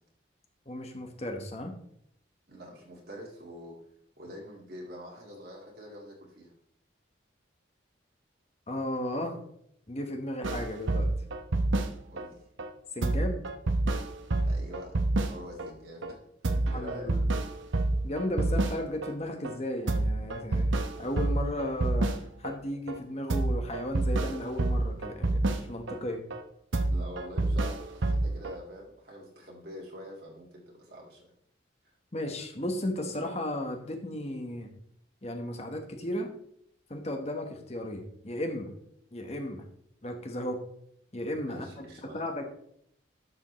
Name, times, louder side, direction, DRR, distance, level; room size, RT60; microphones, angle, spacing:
voice 1, 0.7-1.7 8.7-9.4 9.9-11.1 12.9-13.4 16.7-17.2 18.0-22.1 22.4-26.2 32.1-34.7 35.2-36.3 36.9-38.7 39.1-39.6 40.0-40.6 41.1-42.5, left 1 dB, 35° left, 4 dB, 1.3 m, -35 dB
voice 2, 2.5-3.8 4.2-6.5 12.1-12.4 14.4-15.0 15.3-17.2 26.9-31.3 41.5-42.2, equal, 55° right, -2 dB, 1.9 m, -45 dB
sound 1, 10.4-12.3 12.6-12.7 13.0-15.7 16.0-16.1 16.4-19.1 19.4-19.6 19.9-22.6 22.9-23.0 23.3-26.0 26.3-26.4 26.7-28.6, right 2 dB, 85° right, 0.9 m, -28 dB
11.5 x 6.9 x 3.2 m, 0.70 s
head